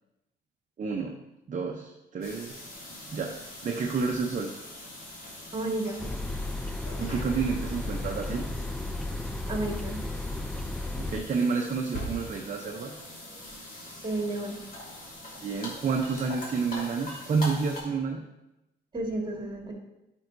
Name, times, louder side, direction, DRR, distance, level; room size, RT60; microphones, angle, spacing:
voice 1, 0.8-1.2 1.5-2.7 3.1-3.3 3.6-4.5 7.0-8.5 11.0-12.9 15.4-18.3, right 5 dB, 40° right, 2 dB, 0.7 m, -30 dB
sound 1, 2.2-17.8, left 1 dB, 45° left, 2.4 m, -42 dB
voice 2, 5.5-6.0 9.5-10.0 14.0-14.6 18.9-19.7, right 2 dB, 25° right, 1 dB, 1.7 m, -31 dB
sound 2, 6.0-11.2, left 2 dB, 5° left, 0.4 m, -34 dB
9.0 x 5.3 x 2.6 m, 0.94 s
cardioid pair, 90°, 20 cm